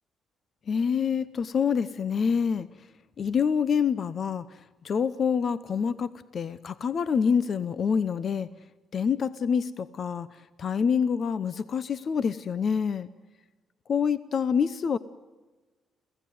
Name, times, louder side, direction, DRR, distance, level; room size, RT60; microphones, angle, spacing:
voice 1, 0.7-2.7 3.2-8.5 8.9-13.1 13.9-15.0, left 6 dB, 50° left, 16 dB, 0.8 m, -26 dB
28.5 x 16.5 x 9.4 m, 1.3 s
cardioid pair, 90°, 0 cm